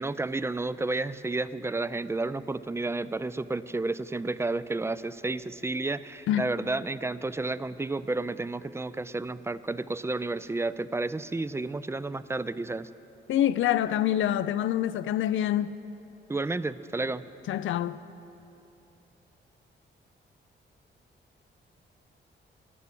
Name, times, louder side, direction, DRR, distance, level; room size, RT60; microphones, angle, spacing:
voice 1, 0.0-12.9 16.3-17.2, right 2 dB, 15° right, 0.3 m, -31 dB
voice 2, 13.3-15.8 17.5-18.0, left 11 dB, 90° left, 0.4 m, -26 dB
12.5 x 9.3 x 8.4 m
cardioid pair, 100°, 20 cm